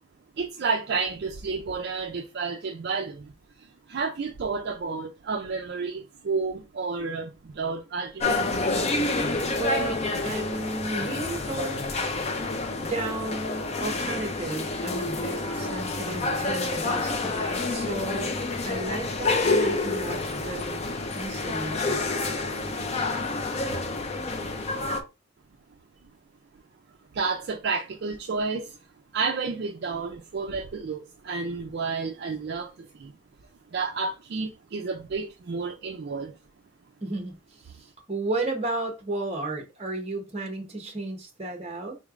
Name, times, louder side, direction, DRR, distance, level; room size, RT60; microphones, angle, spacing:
voice 1, 0.4-3.3 3.6-8.5 27.1-28.8 29.1-33.1 33.7-36.3, right 4 dB, 50° right, 0.4 m, -31 dB
sound 1, 8.2-25.0, left 3 dB, 30° left, 0.4 m, -28 dB
voice 2, 9.6-12.1 12.8-18.3 18.6-20.8 21.1-21.8 23.7-23.8 37.0-37.3 37.6-41.9, right 2 dB, 30° right, 0.8 m, -33 dB
3.9 x 3.1 x 2.4 m
head